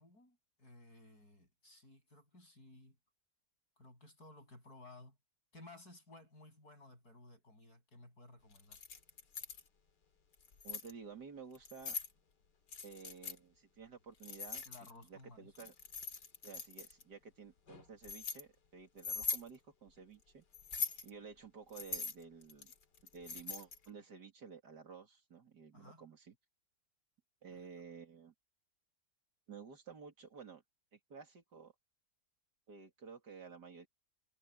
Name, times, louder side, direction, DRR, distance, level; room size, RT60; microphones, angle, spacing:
voice 1, 0.0-3.0 3.8-5.2 5.5-8.8 14.6-15.7 25.7-26.0 27.5-27.7, left 2 dB, 60° left, 8.5 m, -58 dB
Keys jangling, 8.6-9.6 10.3-10.9 11.6-12.1 12.7-13.4 14.2-15.1 15.6-17.0 17.7-18.4 19.0-19.5 20.5-21.1 21.7-23.9, left 5 dB, 85° left, 2.8 m, -42 dB
voice 2, 10.6-12.0 12.8-14.6 15.1-15.7 16.4-20.4 21.0-22.7 23.1-26.3 27.4-28.3 29.5-30.6 30.9-31.7 32.7-33.9, right 5 dB, 75° right, 3.3 m, -53 dB
omnidirectional pair, 1.8 m